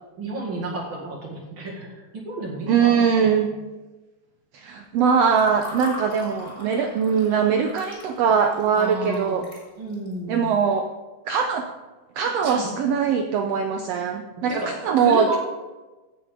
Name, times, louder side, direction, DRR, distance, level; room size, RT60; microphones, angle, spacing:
voice 1, 0.2-3.5 8.8-9.4 9.8-10.5 12.4-12.7 14.5-15.4, right 2 dB, 45° right, -3 dB, 2.5 m, -32 dB
voice 2, 2.7-3.5 4.5-9.4 10.3-10.9 11.3-11.7 12.2-15.4, right 6 dB, 85° right, 5 dB, 1.4 m, -21 dB
Water / Fill (with liquid), 5.0-10.1, left 2 dB, 10° left, 3.2 m, -41 dB
16.0 x 6.7 x 3.7 m, 1.2 s
omnidirectional pair, 3.6 m